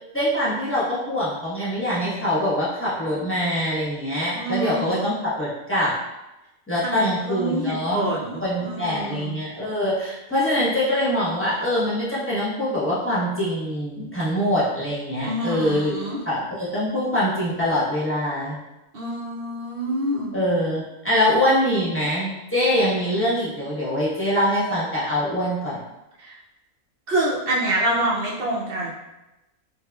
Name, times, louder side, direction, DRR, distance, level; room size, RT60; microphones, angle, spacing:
voice 1, 0.1-5.9 6.7-8.1 8.4-16.0 16.2-18.6 20.3-25.8, left 1 dB, 10° left, -10 dB, 0.9 m, -24 dB
voice 2, 4.3-5.1 6.8-7.0 7.3-9.4 15.2-16.2 18.9-20.3 26.2-26.4 27.1-29.0, right 1 dB, 55° right, -5 dB, 0.7 m, -26 dB
3.3 x 3.2 x 2.3 m, 0.98 s
omnidirectional pair, 1.4 m